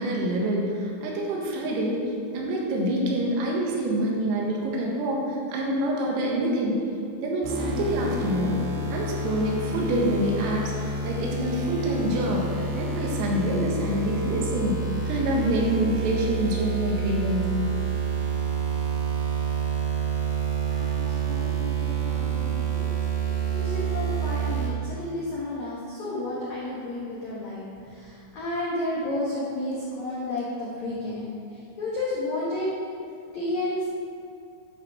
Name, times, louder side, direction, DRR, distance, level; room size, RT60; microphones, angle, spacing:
voice 1, 0.0-2.0 2.3-6.8 7.2-8.6 8.9-17.6, right 1 dB, 85° right, -2 dB, 4.2 m, -26 dB
sound 1, 7.4-24.7, right 5 dB, 55° right, 3.6 m, -28 dB
voice 2, 20.7-32.7 33.3-33.9, left 1 dB, 85° left, -7 dB, 1.6 m, -32 dB
11.0 x 5.6 x 6.2 m, 2.5 s
omnidirectional pair, 5.9 m